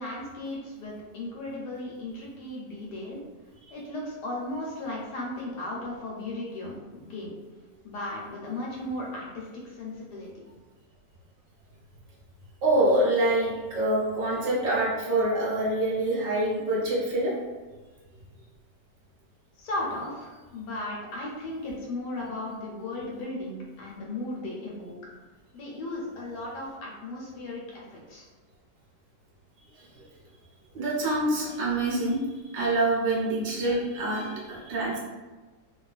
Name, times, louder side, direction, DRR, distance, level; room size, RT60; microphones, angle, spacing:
voice 1, 0.0-3.2 3.7-7.4 7.8-10.3 19.6-24.9 25.5-28.3, left 2 dB, 75° left, -3 dB, 1.1 m, -36 dB
voice 2, 12.6-17.3 29.7-30.0 30.7-35.0, right 1 dB, 55° right, -5 dB, 0.6 m, -26 dB
2.7 x 2.3 x 2.3 m, 1.3 s
omnidirectional pair, 1.9 m